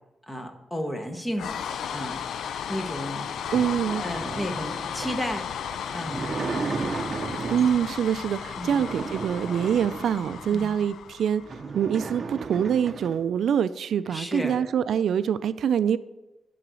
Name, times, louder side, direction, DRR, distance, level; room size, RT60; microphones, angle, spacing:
voice 1, 0.3-1.5 1.9-2.2 2.7-3.5 3.9-5.5 5.9-6.2 8.6-8.8 10.5-10.7 14.1-14.6, equal, 15° left, 5 dB, 1.0 m, -33 dB
sound 1, 1.3-11.6, left 8 dB, 90° left, 0.4 m, -35 dB
sound 2, 2.8-8.0 8.5-10.6 11.1-11.2 11.4-13.2, right 4 dB, 40° right, 0.6 m, -35 dB
voice 2, 3.5-4.0 7.5-11.4 11.7-16.0, right 8 dB, 80° right, 14 dB, 0.3 m, -25 dB
11.0 x 3.9 x 6.2 m, 1.0 s
wide cardioid pair, 135°, 0 cm